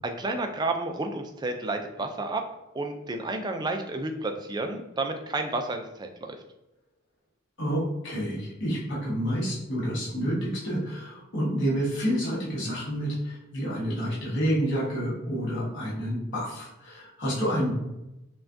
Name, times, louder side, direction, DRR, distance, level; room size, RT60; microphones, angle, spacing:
voice 1, 0.0-2.5 2.7-6.4, right 2 dB, 20° right, 5 dB, 0.3 m, -31 dB
voice 2, 7.6-17.8, equal, 60° left, -7 dB, 1.3 m, -29 dB
5.6 x 2.3 x 2.6 m, 0.94 s
head